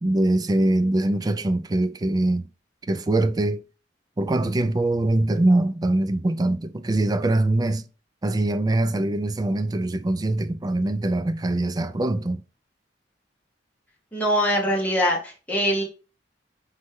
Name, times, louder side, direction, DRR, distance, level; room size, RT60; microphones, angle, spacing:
voice 1, 0.0-2.5 2.9-3.6 4.2-7.8 8.2-12.4, right 2 dB, 20° right, 0.3 m, -23 dB
voice 2, 14.1-15.8, equal, 10° left, 1.3 m, -23 dB
4.2 x 3.3 x 3.5 m
head